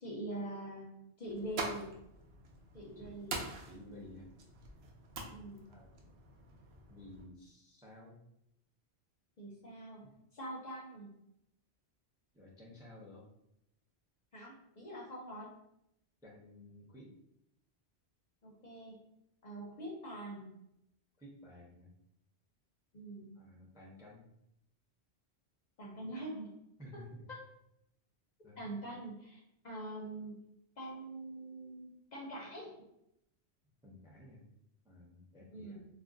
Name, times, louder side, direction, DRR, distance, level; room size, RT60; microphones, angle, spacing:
voice 1, 0.0-1.9 2.7-3.4 3.8-4.0 5.3-5.6 9.4-10.0 10.3-11.1 14.3-15.5 18.4-19.0 19.4-20.5 22.9-23.3 25.8-26.5 28.6-30.4 30.8-32.7 35.5-35.8, right 1 dB, 50° left, -3 dB, 0.6 m, -44 dB
sound 1, 1.2-7.3, right 3 dB, 70° right, 0.8 m, -45 dB
voice 2, 3.7-4.3 5.7-6.2 6.9-8.2 10.0-10.1 12.3-13.3 16.2-17.2 21.2-21.9 23.3-24.3 26.8-27.3 28.4-28.7 33.8-34.5 34.8-35.8, left 1 dB, 5° right, -3 dB, 0.4 m, -54 dB
2.4 x 2.1 x 3.7 m, 0.80 s
omnidirectional pair, 1.1 m